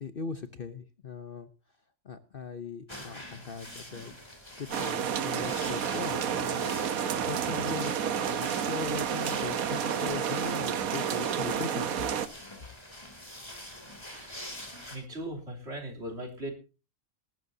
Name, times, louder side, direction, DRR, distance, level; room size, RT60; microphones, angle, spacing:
voice 1, 0.0-1.5 2.0-4.1 4.6-11.9, left 5 dB, 45° left, 10 dB, 0.9 m, -39 dB
sound 1, 2.9-15.0, left 1 dB, 20° left, 3.5 m, -46 dB
sound 2, 4.7-12.3, right 8 dB, 85° right, 1.4 m, -30 dB
voice 2, 14.1-14.5 14.9-16.5, right 1 dB, 50° right, 1 dB, 3.6 m, -39 dB
19.0 x 12.5 x 2.7 m, 0.32 s
omnidirectional pair, 1.4 m